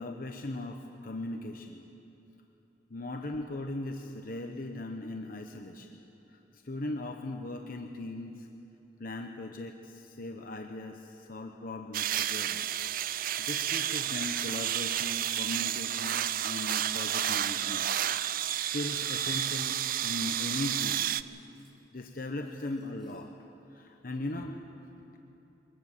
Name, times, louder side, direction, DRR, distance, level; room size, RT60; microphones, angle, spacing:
voice 1, 0.0-1.9 2.9-6.0 6.3-8.5 9.0-12.7 13.4-17.9 18.5-21.1 21.9-23.3 23.7-24.6, left 2 dB, 50° left, 3 dB, 1.0 m, -38 dB
sound 1, 11.9-21.2, right 11 dB, 50° right, 0.4 m, -31 dB
Cutlery silverware, 14.7-15.0 15.2-17.5 17.8-18.5 18.8-18.9 19.5-21.8 22.1-23.2, left 2 dB, ahead, 3.8 m, -60 dB
22.5 x 19.0 x 7.4 m, 3.0 s
head